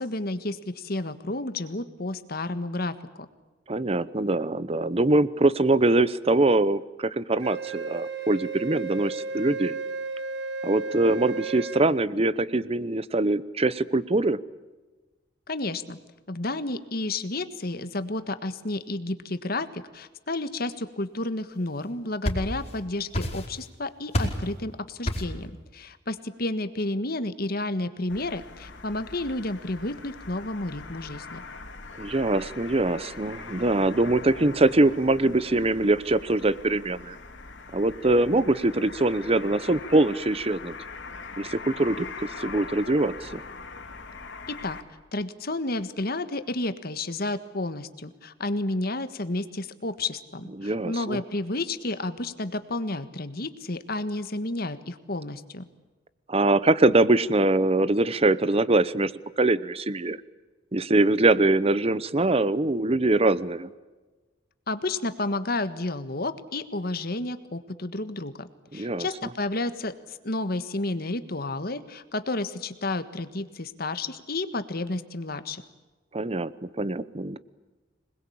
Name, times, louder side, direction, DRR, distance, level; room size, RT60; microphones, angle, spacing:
voice 1, 0.0-3.0 15.5-16.0 16.3-31.4 44.5-44.8 45.1-55.7 64.7-68.5 68.7-75.6, left 2 dB, 55° left, 11 dB, 1.6 m, -31 dB
voice 2, 3.7-9.7 10.6-14.4 32.0-37.2 37.7-40.7 41.4-43.4 50.6-51.2 56.3-59.1 59.4-60.2 60.7-63.7 68.7-69.1 76.1-77.4, right 2 dB, 30° right, 17 dB, 0.9 m, -23 dB
Wind instrument woodwind instrument, 7.4-11.9, right 4 dB, 65° right, 1.7 m, -33 dB
sound 1, 21.8-22.8 23.1-23.7 24.1-24.5 25.1-25.4, equal, 35° left, 4.6 m, -29 dB
sound 2, 28.1-44.8, left 4 dB, 80° left, 2.9 m, -42 dB
26.5 x 21.0 x 8.7 m, 1.2 s
head